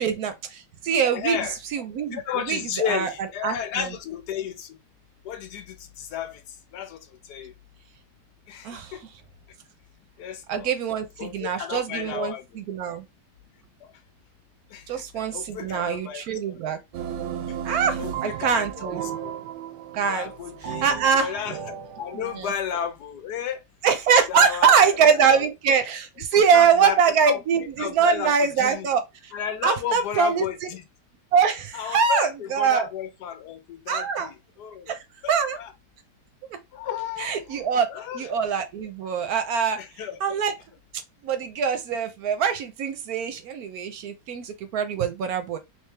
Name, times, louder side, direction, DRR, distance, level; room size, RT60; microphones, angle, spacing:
voice 1, 0.0-1.4 1.7-2.6 2.9-3.1 3.4-3.9 8.6-8.9 10.5-13.0 14.9-16.8 17.6-19.0 19.9-20.3 20.8-21.3 22.1-22.5 23.8-29.3 29.6-30.5 31.3-32.9 33.9-34.3 34.9-35.0 35.3-35.6 37.2-37.9 38.1-39.8 40.2-40.5 41.2-45.6, right 6 dB, 70° right, 1.0 m, -23 dB
voice 2, 1.0-1.6 2.1-4.8 5.2-7.5 8.5-9.0 10.2-10.7 11.2-12.6 13.8-13.9 14.7-16.6 18.0-19.4 20.1-23.6 24.3-25.5 26.3-28.9 29.3-30.8 31.7-35.0 35.2-35.7 36.7-37.6 37.9-38.3 39.8-40.4, left 8 dB, 75° left, 1.2 m, -33 dB
sound 1, 16.9-22.4, right 9 dB, 90° right, 1.2 m, -34 dB
3.3 x 2.9 x 3.2 m
omnidirectional pair, 1.8 m